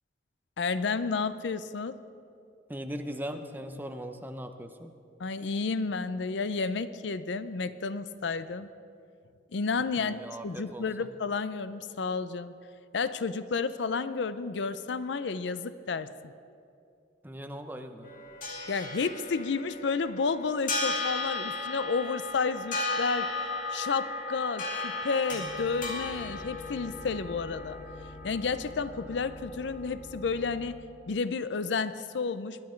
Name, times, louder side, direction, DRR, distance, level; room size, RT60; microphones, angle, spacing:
voice 1, 0.6-2.0 5.2-8.7 9.5-12.5 12.9-16.1 18.7-23.4 23.7-27.8 28.2-30.8 31.1-32.7, left 4 dB, 65° left, 14 dB, 0.5 m, -31 dB
voice 2, 2.7-4.9 10.0-11.1 17.2-18.1, equal, 10° right, 7 dB, 0.7 m, -39 dB
sound 1, 18.0-30.7, left 3 dB, 45° left, 2.1 m, -36 dB
21.5 x 10.5 x 4.5 m, 2.5 s
head